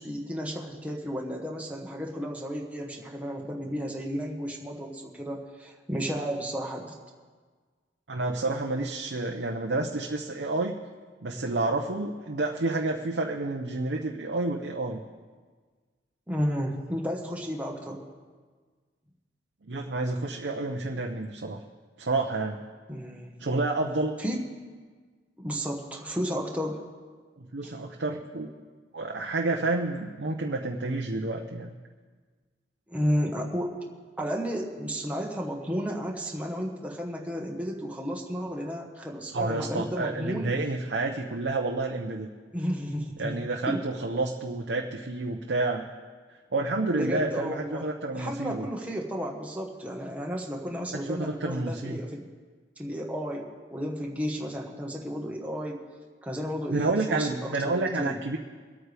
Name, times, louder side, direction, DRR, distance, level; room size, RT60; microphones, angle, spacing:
voice 1, 0.0-6.9 16.3-18.1 22.9-23.3 24.2-24.4 25.4-26.8 27.6-27.7 32.9-33.9 34.2-40.5 42.5-43.8 46.9-47.9 48.1-52.3 52.8-55.8 56.2-58.2, equal, 10° right, -1 dB, 1.3 m, -33 dB
voice 2, 8.1-10.8 11.2-15.0 19.7-21.6 22.0-22.6 23.4-24.2 27.4-28.5 28.9-31.7 39.3-42.3 43.2-45.9 46.5-48.7 50.9-52.0 56.7-58.4, right 2 dB, 90° right, 1 dB, 0.8 m, -29 dB
23.5 x 9.0 x 3.5 m, 1.5 s
head